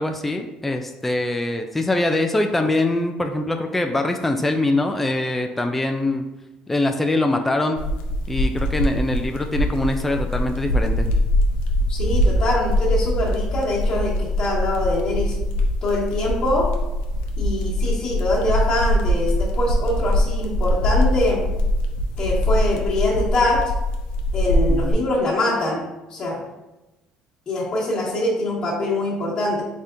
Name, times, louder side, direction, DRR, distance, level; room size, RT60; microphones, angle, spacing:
voice 1, 0.0-6.2 6.7-7.8 8.3-11.1 24.7-25.0, left 2 dB, 10° left, 4 dB, 0.3 m, -23 dB
sound 1, 7.8-24.9, equal, 90° left, 0.5 m, -22 dB
voice 2, 11.9-15.3 15.8-16.7 17.4-21.4 22.2-23.6 24.3-26.4 27.5-29.6, left 2 dB, 35° left, -10 dB, 1.3 m, -23 dB
4.1 x 3.5 x 2.5 m, 1.0 s
cardioid pair, 110°, 2 cm